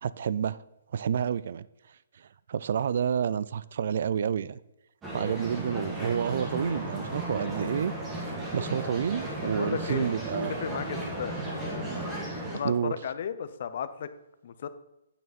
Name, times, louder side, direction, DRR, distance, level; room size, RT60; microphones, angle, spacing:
voice 1, 0.0-0.6 0.9-1.6 2.2-4.6 5.1-7.9 8.5-10.6 12.6-12.9, right 8 dB, 50° right, 0.4 m, -29 dB
sound 1, 5.0-12.6, right 1 dB, 10° right, 1.5 m, -35 dB
voice 2, 9.4-10.1 10.6-11.3 12.5-14.1 14.4-14.7, left 8 dB, 45° left, 0.6 m, -34 dB
9.1 x 6.7 x 4.1 m
hypercardioid pair, 170°, 0 cm